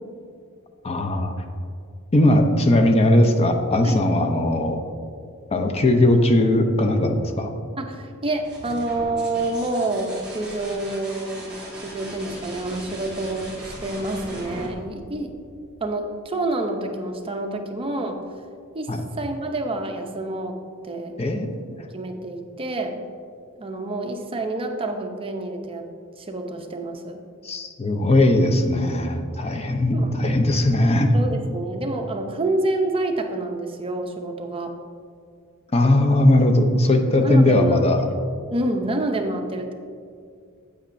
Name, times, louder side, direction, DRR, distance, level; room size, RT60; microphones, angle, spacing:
voice 1, 0.8-1.3 2.1-4.8 5.5-7.5 18.9-19.0 21.2-21.5 27.4-31.1 35.7-38.0, left 1 dB, 30° left, 5 dB, 0.6 m, -19 dB
voice 2, 7.8-11.5 11.8-15.3 15.8-18.2 18.7-20.6 20.8-21.2 21.9-22.9 23.6-25.8 26.2-27.2 29.9-30.1 31.1-34.7 37.2-37.8 38.5-39.7, right 2 dB, 25° right, 4 dB, 0.6 m, -28 dB
sound 1, 8.3-15.9 17.7-18.2, right 1 dB, 5° right, 2.0 m, -39 dB
8.5 x 8.3 x 2.6 m, 2.2 s
head